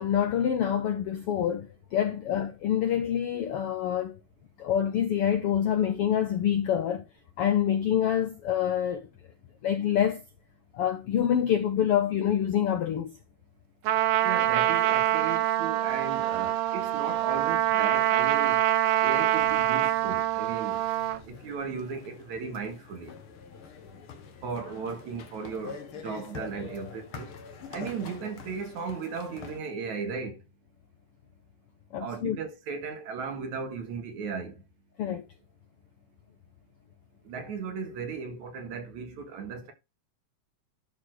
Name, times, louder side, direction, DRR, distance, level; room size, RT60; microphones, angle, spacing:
voice 1, 0.0-4.2 4.6-7.0 7.4-9.1 9.6-10.2 10.7-13.1 31.9-32.4 35.0-35.2, left 9 dB, 75° left, 1.3 m, -26 dB
Trumpet, 13.9-21.2, right 13 dB, 90° right, 2.5 m, -25 dB
voice 2, 14.2-18.6 19.0-20.8 21.3-23.1 24.4-27.3 27.7-30.4 32.0-34.6 37.3-39.7, right 5 dB, 70° right, 3.0 m, -36 dB
sound 1, 19.3-29.6, left 5 dB, 55° left, 1.6 m, -46 dB
11.5 x 4.2 x 4.6 m
omnidirectional pair, 3.6 m